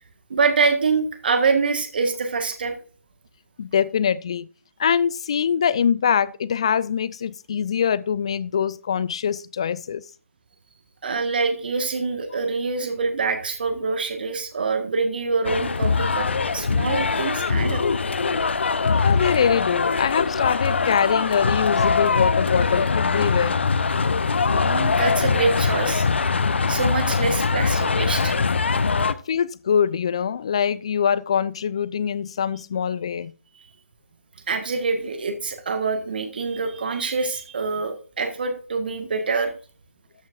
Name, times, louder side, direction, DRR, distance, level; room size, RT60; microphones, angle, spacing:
voice 1, 0.3-2.7 11.0-17.8 24.5-26.1 26.7-28.4 29.0-29.1 34.5-39.5, right 4 dB, 40° right, 1.6 m, -25 dB
voice 2, 3.6-4.5 4.8-10.0 19.0-23.6 29.1-33.3, left 7 dB, 20° left, 0.3 m, -23 dB
sound 1, 15.4-29.1, left 4 dB, 50° left, 0.7 m, -22 dB
13.0 x 9.2 x 2.5 m
figure-of-eight pair, 150°, 8 cm